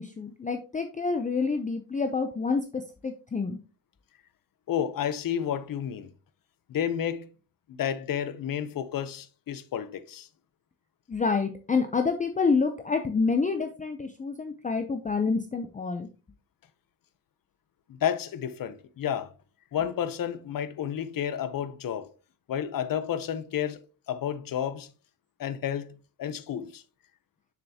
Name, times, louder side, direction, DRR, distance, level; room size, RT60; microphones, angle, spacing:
voice 1, 0.0-3.6 11.1-16.1, left 4 dB, 20° left, 0.5 m, -28 dB
voice 2, 4.7-6.1 6.7-7.3 7.8-10.3 17.9-19.3 19.7-22.1 22.5-23.8 24.1-24.9 25.4-26.8, left 9 dB, 55° left, 0.8 m, -31 dB
6.7 x 6.6 x 2.8 m
cardioid pair, 115°, 39 cm